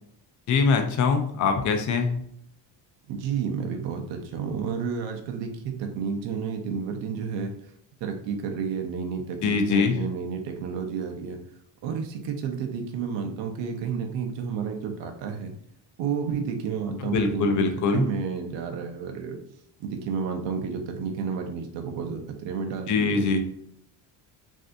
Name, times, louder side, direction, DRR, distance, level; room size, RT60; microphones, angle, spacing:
voice 1, 0.5-2.1 9.4-10.0 17.0-18.1 22.9-23.4, left 5 dB, 40° left, 6 dB, 0.5 m, -23 dB
voice 2, 3.1-7.5 8.0-11.4 11.8-15.5 16.0-19.4 19.8-23.3, right 6 dB, 75° right, 4 dB, 0.7 m, -31 dB
3.3 x 2.6 x 2.5 m, 0.70 s
cardioid pair, 165°, 45 cm